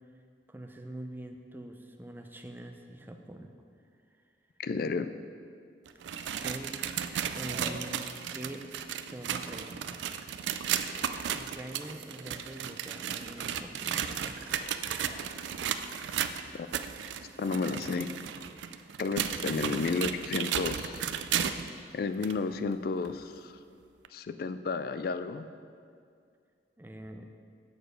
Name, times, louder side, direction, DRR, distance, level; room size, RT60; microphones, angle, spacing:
voice 1, 0.5-3.5 6.4-6.8 7.3-8.7 8.9-10.1 11.3-14.8 26.8-27.3, right 1 dB, 10° right, 5 dB, 0.4 m, -44 dB
voice 2, 4.6-5.1 16.6-16.7 17.4-18.1 19.0-21.0 21.9-23.6 24.1-25.5, left 4 dB, 55° left, 11 dB, 0.3 m, -32 dB
sound 1, 5.9-21.7 22.2-22.3 23.0-23.1 24.0-24.1, right 8 dB, 80° right, 0.4 m, -34 dB
Laughter, 7.3-8.1 10.6-11.2 11.8-13.0 13.6-16.2, right 2 dB, 55° right, 1.6 m, -51 dB
6.8 x 6.7 x 5.1 m, 2.3 s
head